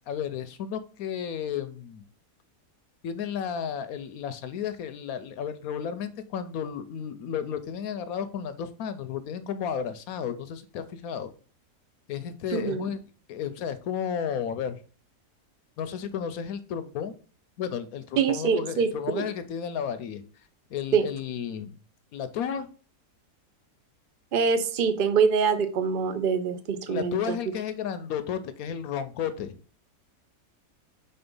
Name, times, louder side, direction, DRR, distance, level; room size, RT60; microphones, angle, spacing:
voice 1, 0.1-2.0 3.0-11.3 12.1-13.0 13.3-14.8 15.8-17.1 17.6-20.2 20.7-21.7 22.1-22.7 26.9-29.6, left 8 dB, 70° left, 11 dB, 1.0 m, -33 dB
voice 2, 12.5-12.9 18.2-19.2 20.9-21.0 24.3-27.4, right 6 dB, 60° right, 9 dB, 0.5 m, -25 dB
4.3 x 4.2 x 5.3 m, 0.39 s
omnidirectional pair, 1.7 m